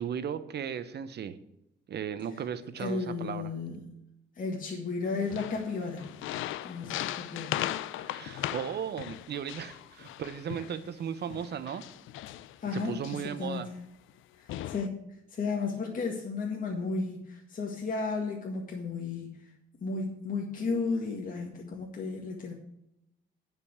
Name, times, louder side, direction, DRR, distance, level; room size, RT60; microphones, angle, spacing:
voice 1, 0.0-1.3 1.9-3.5 8.0-11.8 12.7-13.7, right 8 dB, 55° right, 13 dB, 1.0 m, -36 dB
voice 2, 2.8-3.8 4.3-6.1 6.6-7.6 12.6-13.7 14.4-19.5 19.8-22.5, left 4 dB, 45° left, 0 dB, 1.9 m, -34 dB
sound 1, 5.2-10.8 11.3-13.4 14.1-14.2 14.5-14.9, left 13 dB, 85° left, 0.5 m, -38 dB
10.0 x 5.3 x 8.1 m, 0.83 s
cardioid pair, 90°, 20 cm